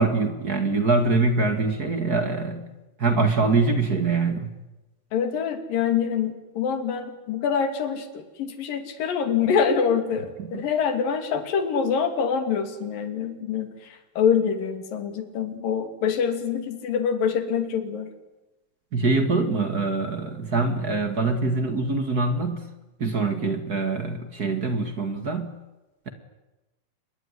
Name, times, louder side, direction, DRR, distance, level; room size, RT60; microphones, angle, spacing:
voice 1, 0.0-2.7 3.0-4.5 10.5-10.6 18.9-22.6 23.0-25.5 26.0-26.1, right 3 dB, 35° right, 8 dB, 1.5 m, -24 dB
voice 2, 5.1-18.1, left 7 dB, 60° left, 8 dB, 4.1 m, -25 dB
26.5 x 22.0 x 9.9 m, 1.0 s
omnidirectional pair, 4.6 m